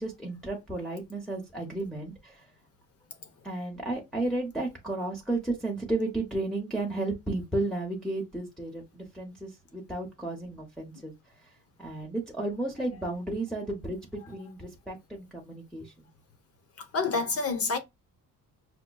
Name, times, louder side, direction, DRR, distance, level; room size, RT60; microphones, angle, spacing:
voice 1, 0.0-2.4 3.4-11.1 11.8-16.1, right 2 dB, ahead, 0.8 m, -33 dB
voice 2, 16.8-17.8, left 4 dB, 40° left, 1.0 m, -28 dB
6.0 x 2.1 x 2.2 m
cardioid pair, 135°, 35 cm